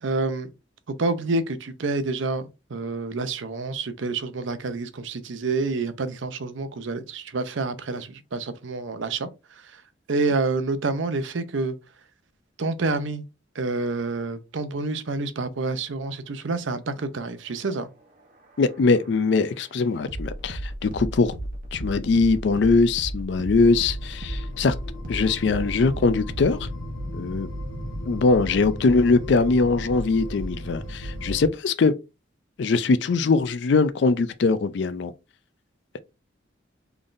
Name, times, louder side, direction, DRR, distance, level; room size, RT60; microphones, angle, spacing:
voice 1, 0.0-0.5 1.0-9.3 10.1-11.8 12.6-13.2 13.6-17.9, right 3 dB, 75° right, 0.6 m, -28 dB
sound 1, 18.0-26.7, right 1 dB, 45° right, 0.9 m, -35 dB
voice 2, 18.6-21.3 21.7-24.8 25.1-26.7 27.2-27.5 28.1-31.9 32.6-35.1, left 4 dB, 60° left, 0.4 m, -21 dB
sound 2, 23.6-31.5, equal, 80° left, 1.1 m, -35 dB
3.9 x 3.4 x 2.5 m
head